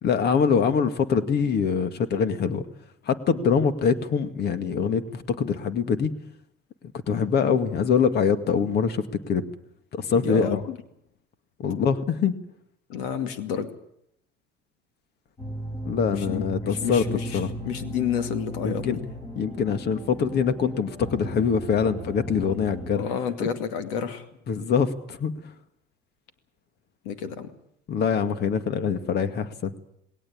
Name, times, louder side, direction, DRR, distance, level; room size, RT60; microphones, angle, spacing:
voice 1, 0.0-2.6 3.1-6.1 7.1-9.4 9.9-10.6 11.6-12.3 15.8-17.0 17.3-17.5 18.6-19.0 19.4-23.1 24.5-25.3 27.9-29.8, left 6 dB, 50° left, 10 dB, 2.1 m, -24 dB
voice 2, 10.1-10.8 12.9-13.7 16.1-19.0 23.0-24.2 27.0-27.5, left 8 dB, 85° left, 9 dB, 2.4 m, -30 dB
sound 1, 15.4-22.9, equal, 20° left, 5.5 m, -36 dB
19.5 x 18.0 x 8.8 m, 0.73 s
supercardioid pair, 100°, 21 cm